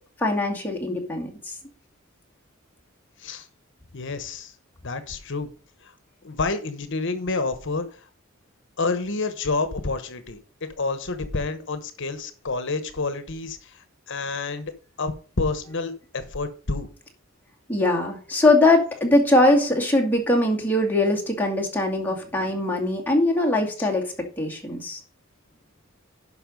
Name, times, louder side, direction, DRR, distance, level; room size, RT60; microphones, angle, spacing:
voice 1, 0.2-1.5 17.7-25.0, left 2 dB, 10° left, 0 dB, 2.3 m, -21 dB
voice 2, 3.9-4.5 4.8-5.5 5.8-5.9 6.2-8.1 8.8-14.7 15.0-16.9 23.8-23.9, left 3 dB, 65° left, 11 dB, 1.1 m, -29 dB
11.0 x 5.7 x 5.2 m, 0.40 s
head